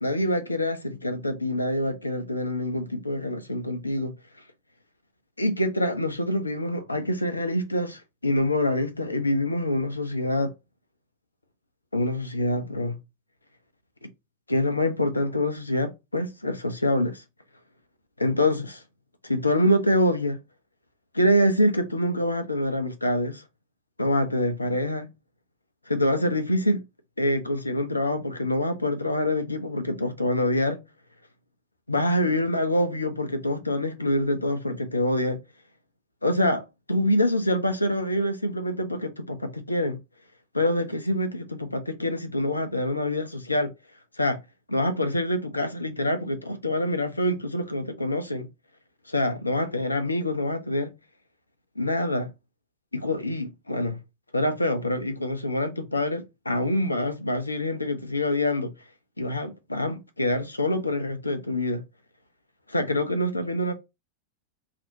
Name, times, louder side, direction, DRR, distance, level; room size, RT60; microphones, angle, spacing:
voice 1, 0.0-4.1 5.4-10.5 11.9-13.0 14.5-17.2 18.2-18.8 19.2-20.4 21.1-23.4 24.0-25.1 25.9-26.8 27.2-30.8 31.9-35.4 36.2-36.6 36.9-40.0 40.5-43.7 44.2-44.4 44.7-48.5 49.1-50.9 51.8-52.3 52.9-54.0 54.3-58.7 59.2-61.8 62.7-63.7, left 1 dB, 85° left, 0.4 m, -25 dB
2.4 x 2.0 x 2.7 m
figure-of-eight pair, 90°, 0 cm